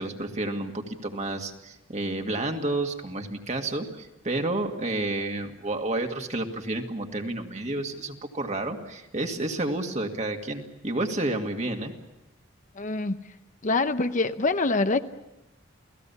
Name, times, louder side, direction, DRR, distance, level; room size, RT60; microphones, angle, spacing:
voice 1, 0.0-11.9, right 2 dB, 35° right, 3 dB, 2.2 m, -30 dB
voice 2, 12.8-13.2 13.6-15.0, left 3 dB, 40° left, 9 dB, 0.8 m, -25 dB
29.5 x 18.0 x 7.1 m, 0.97 s
head